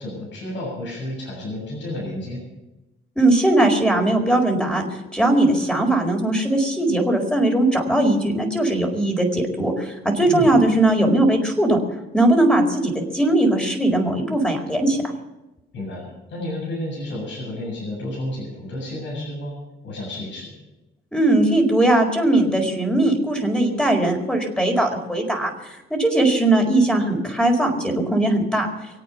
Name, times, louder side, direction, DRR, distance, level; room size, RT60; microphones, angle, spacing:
voice 1, 0.0-2.4 10.2-10.6 15.7-19.6 19.8-20.6, left 1 dB, 65° left, -4 dB, 7.3 m, -31 dB
voice 2, 3.2-4.8 5.1-11.8 12.1-15.0 21.1-28.7, right 1 dB, 5° left, 2 dB, 4.7 m, -19 dB
25.0 x 8.9 x 5.9 m, 0.99 s
cardioid pair, 90°, 20 cm